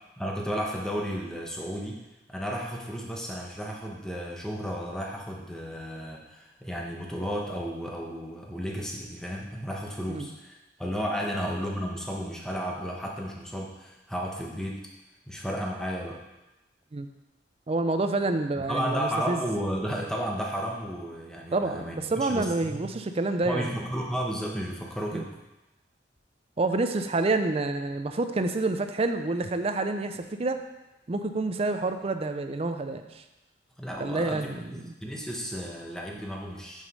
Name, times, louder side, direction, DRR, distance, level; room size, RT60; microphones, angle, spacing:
voice 1, 0.2-2.0 2.3-14.8 15.3-16.2 18.7-22.9 23.4-25.4 33.8-36.9, equal, 5° left, -1 dB, 1.0 m, -33 dB
voice 2, 17.7-19.4 21.5-23.7 25.1-25.2 26.6-30.6 31.1-33.2 34.0-34.9, right 2 dB, 35° right, 8 dB, 0.5 m, -28 dB
6.4 x 5.0 x 5.4 m, 1.0 s
head